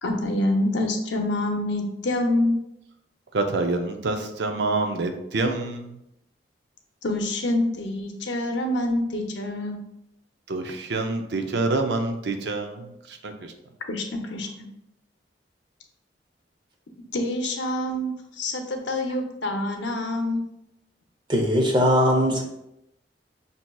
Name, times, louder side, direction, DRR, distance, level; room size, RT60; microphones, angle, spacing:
voice 1, 0.0-2.6 7.0-9.8 13.9-14.5 17.1-20.5, left 1 dB, 85° left, 3 dB, 0.6 m, -26 dB
voice 2, 3.3-5.9 10.5-12.9 13.2-13.5, right 3 dB, 70° right, 5 dB, 0.5 m, -26 dB
voice 3, 21.3-22.4, equal, 25° right, 2 dB, 0.6 m, -20 dB
5.8 x 2.8 x 2.3 m, 0.85 s
head